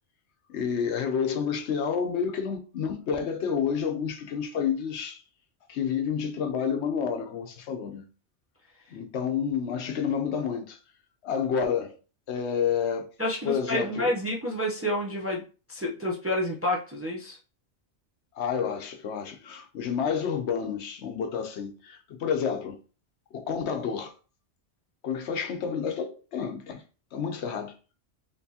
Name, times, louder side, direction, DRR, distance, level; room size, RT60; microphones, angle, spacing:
voice 1, 0.5-5.2 5.7-8.1 8.9-10.8 11.2-11.9 12.3-13.1 13.4-14.2 18.3-22.8 23.3-24.1 25.0-26.8 27.1-27.8, left 7 dB, 75° left, 0.9 m, -29 dB
voice 2, 13.2-15.4 15.7-17.4, left 1 dB, 15° right, 0.5 m, -29 dB
4.4 x 3.0 x 2.8 m
omnidirectional pair, 1.2 m